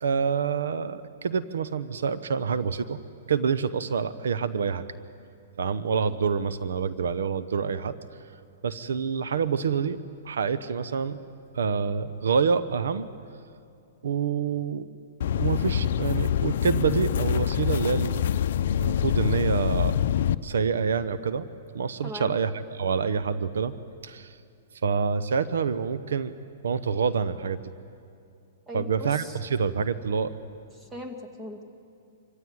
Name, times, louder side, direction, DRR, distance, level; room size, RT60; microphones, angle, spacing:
voice 1, 0.0-3.0 3.3-4.8 5.6-8.0 8.6-10.0 10.2-11.2 11.5-13.1 14.0-14.9 15.3-18.2 18.8-20.0 20.4-21.5 21.7-23.7 24.0-24.3 24.8-26.3 26.6-27.6 28.7-30.4, right 6 dB, 85° right, 13 dB, 0.9 m, -27 dB
sound 1, 15.2-20.4, left 9 dB, 65° left, 0.6 m, -25 dB
voice 2, 22.0-22.4 28.7-29.4 30.8-31.6, equal, 15° right, 5 dB, 2.0 m, -39 dB
25.5 x 16.0 x 9.4 m, 2.6 s
hypercardioid pair, 150°, 0 cm